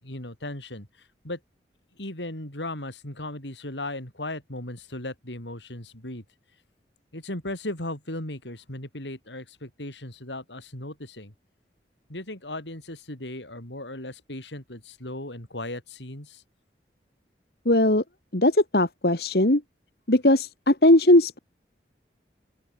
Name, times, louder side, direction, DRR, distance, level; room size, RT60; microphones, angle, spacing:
voice 1, 0.0-0.9 1.2-1.4 2.0-6.2 7.1-11.3 12.1-16.4, left 1 dB, 90° left, 7.1 m, -36 dB
voice 2, 17.7-18.0 18.3-19.6 20.1-21.4, left 1 dB, 60° left, 2.3 m, -19 dB
open air
head